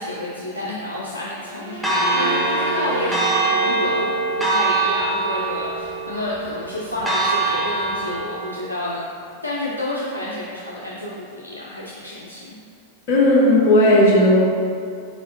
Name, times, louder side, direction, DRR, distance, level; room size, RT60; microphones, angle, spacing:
voice 1, 0.0-4.2 4.4-9.1 9.4-12.6, left 1 dB, 85° left, -6 dB, 0.4 m, -29 dB
sound 1, 1.4-4.4, right 1 dB, 75° right, 0.7 m, -32 dB
Church bell, 1.8-8.3, right 3 dB, 10° right, 0.7 m, -23 dB
voice 2, 13.1-14.4, left 1 dB, 50° left, -4 dB, 0.7 m, -14 dB
4.6 x 4.1 x 2.6 m, 2.4 s
figure-of-eight pair, 90°, 0 cm